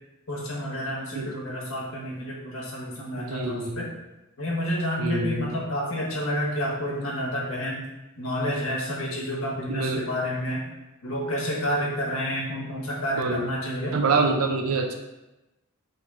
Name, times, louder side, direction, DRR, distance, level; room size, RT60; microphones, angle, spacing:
voice 1, 0.3-3.9 4.4-7.9 8.2-10.7 11.0-14.3, equal, 75° left, -3 dB, 1.2 m, -29 dB
voice 2, 3.1-3.9 5.0-5.6 9.7-10.1 13.2-13.5 13.9-14.9, right 3 dB, 90° right, 4 dB, 0.6 m, -26 dB
4.5 x 3.2 x 3.6 m, 1.0 s
head